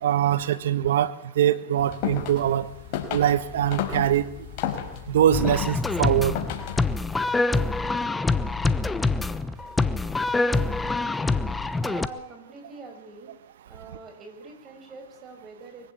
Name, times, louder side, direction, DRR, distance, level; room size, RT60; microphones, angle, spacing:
voice 1, 0.0-2.7 3.1-4.2 5.1-6.3, right 10 dB, 75° right, 14 dB, 1.5 m, -23 dB
sound 1, 1.8-7.0, left 10 dB, 50° left, 5.0 m, -33 dB
sound 2, 5.3-12.1, left 3 dB, 10° left, 0.9 m, -25 dB
voice 2, 11.8-13.3 13.7-15.9, right 3 dB, 25° right, 5 dB, 6.5 m, -43 dB
23.5 x 15.5 x 8.6 m, 0.93 s
hypercardioid pair, 125°, 0 cm